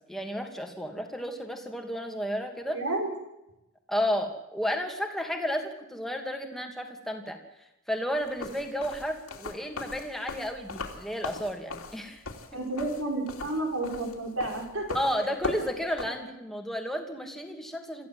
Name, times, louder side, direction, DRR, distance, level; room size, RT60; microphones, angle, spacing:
voice 1, 0.1-2.8 3.9-7.4 7.9-12.2 14.9-18.1, equal, ahead, 3 dB, 2.6 m, -32 dB
voice 2, 2.7-3.1 12.5-15.3, right 2 dB, 70° right, 1 dB, 5.6 m, -31 dB
sound 1, 8.3-16.1, left 3 dB, 75° left, 3.0 m, -38 dB
26.0 x 14.5 x 7.8 m, 0.92 s
head